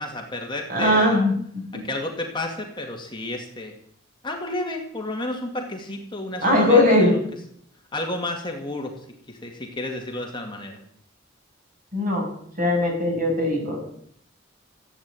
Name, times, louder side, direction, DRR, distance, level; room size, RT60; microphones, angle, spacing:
voice 1, 0.0-1.3 1.7-3.7 4.2-7.2 7.9-8.9 9.3-10.8, left 1 dB, 25° left, 2 dB, 2.2 m, -31 dB
voice 2, 0.7-1.8 6.4-7.1 11.9-12.2 12.6-13.8, left 1 dB, 45° right, 1 dB, 6.6 m, -20 dB
15.0 x 9.0 x 9.0 m, 0.66 s
head